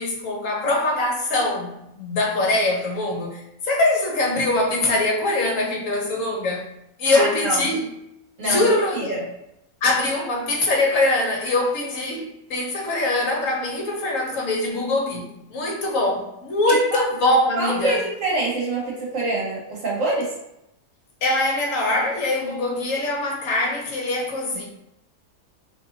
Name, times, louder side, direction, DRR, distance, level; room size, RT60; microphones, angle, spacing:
voice 1, 0.0-6.7 7.0-7.8 8.4-9.1 9.8-18.0 21.2-24.7, left 2 dB, 60° left, -1 dB, 1.2 m, -23 dB
voice 2, 7.1-7.7 8.4-9.2 16.7-17.0 17.6-20.3, right 2 dB, 55° right, -5 dB, 1.8 m, -26 dB
4.4 x 3.4 x 2.7 m, 0.84 s
omnidirectional pair, 1.7 m